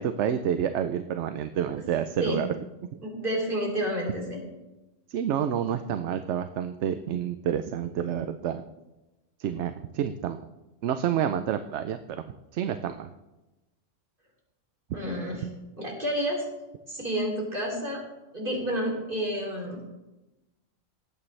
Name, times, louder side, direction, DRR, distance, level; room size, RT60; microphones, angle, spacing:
voice 1, 0.0-2.5 5.1-8.6 9.4-10.4 10.8-12.2 12.5-13.1, right 9 dB, 70° right, 9 dB, 0.9 m, -29 dB
voice 2, 3.0-4.4 14.9-15.5 15.8-16.4 16.9-18.0 18.3-19.8, equal, 45° right, -1 dB, 3.2 m, -30 dB
19.5 x 8.6 x 3.2 m, 1.0 s
omnidirectional pair, 1.3 m